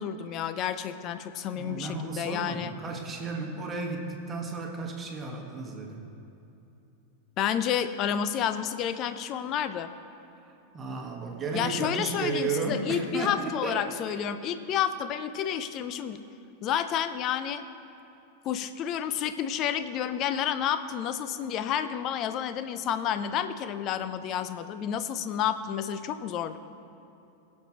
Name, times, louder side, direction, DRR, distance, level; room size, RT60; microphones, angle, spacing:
voice 1, 0.0-2.7 7.4-9.9 11.5-16.2 16.6-17.6 18.4-26.6, left 9 dB, 35° left, 11 dB, 0.5 m, -30 dB
voice 2, 1.5-6.0 10.4-14.2, right 4 dB, 20° right, 1 dB, 1.5 m, -34 dB
21.0 x 7.4 x 3.0 m, 2.9 s
figure-of-eight pair, 90°, 0 cm